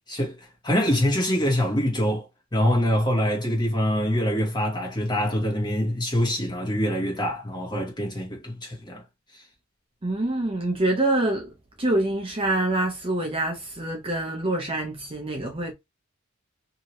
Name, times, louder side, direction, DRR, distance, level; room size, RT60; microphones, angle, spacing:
voice 1, 0.1-0.4 0.6-9.0 9.3-9.4, equal, 20° left, 1.2 m, -25 dB
voice 2, 10.0-11.5 11.8-15.7, right 2 dB, 25° right, 0.6 m, -25 dB
2.8 x 2.7 x 2.9 m
head